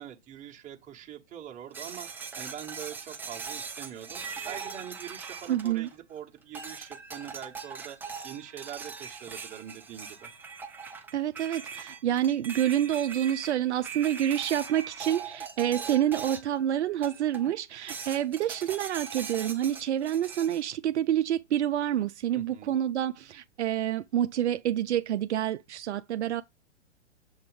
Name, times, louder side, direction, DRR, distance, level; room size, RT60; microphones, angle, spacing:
voice 1, 0.0-2.1 2.3-10.3 22.3-22.7, right 10 dB, 20° right, 1.2 m, -43 dB
sound 1, 1.7-6.1 6.5-16.6 17.0-17.5 17.9-20.6, right 5 dB, 5° right, 0.4 m, -41 dB
voice 2, 5.5-5.9 11.1-26.4, right 11 dB, 70° right, 0.5 m, -28 dB
7.1 x 3.0 x 4.8 m
hypercardioid pair, 115°, 35 cm